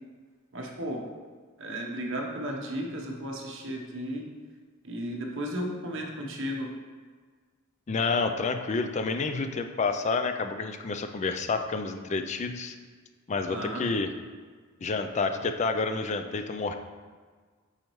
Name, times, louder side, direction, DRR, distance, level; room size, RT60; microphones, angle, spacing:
voice 1, 0.5-1.0 1.6-4.3 4.8-6.7 13.5-13.8, equal, 55° right, 0 dB, 0.9 m, -34 dB
voice 2, 7.9-12.8 13.3-14.1 14.8-16.7, left 4 dB, 30° left, 7 dB, 0.3 m, -29 dB
8.5 x 4.2 x 3.1 m, 1.5 s
head